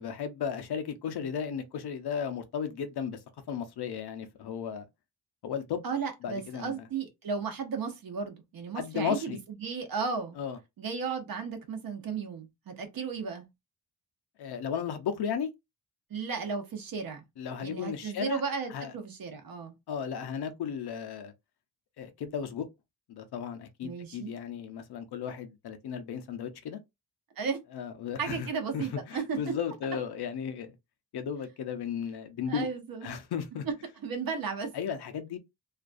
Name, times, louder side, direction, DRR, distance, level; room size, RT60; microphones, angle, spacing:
voice 1, 0.0-3.2 3.5-4.9 5.4-5.8 6.2-6.8 8.8-9.4 10.4-10.6 14.4-15.5 17.4-18.4 18.7-18.9 19.9-21.3 22.0-22.7 23.1-26.8 27.7-28.5 28.7-30.7 31.1-32.7 33.0-33.6 34.7-35.4, left 7 dB, 80° left, 0.6 m, -35 dB
voice 2, 5.8-10.4 10.8-13.4 16.1-17.2 17.6-19.7 23.8-24.3 27.4-27.6 28.2-29.5 32.5-33.2 34.0-34.7, right 5 dB, 60° right, 0.8 m, -34 dB
2.4 x 2.2 x 2.4 m
wide cardioid pair, 135°, 39 cm